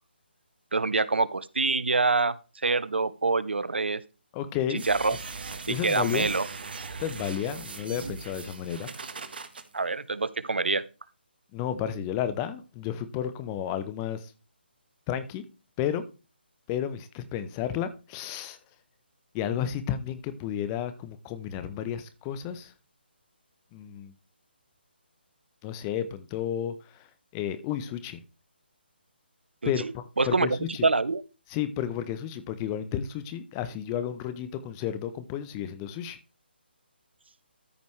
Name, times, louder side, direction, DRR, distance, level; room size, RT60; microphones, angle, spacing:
voice 1, 0.7-4.0 4.8-5.2 5.7-6.5 9.7-10.8 29.6-29.9 30.2-30.5 30.8-31.2, right 3 dB, 80° right, 18 dB, 0.7 m, -26 dB
voice 2, 4.3-4.8 5.7-6.3 7.0-8.9 11.5-14.3 15.1-15.4 15.8-16.0 16.7-18.6 19.3-22.7 23.7-24.1 25.6-27.0 27.3-28.2 29.6-30.9 31.5-36.2, left 10 dB, 20° left, 12 dB, 0.7 m, -32 dB
sound 1, 4.8-9.6, right 4 dB, 60° right, 1.3 m, -39 dB
13.5 x 5.2 x 3.1 m, 0.31 s
figure-of-eight pair, 145°, 6 cm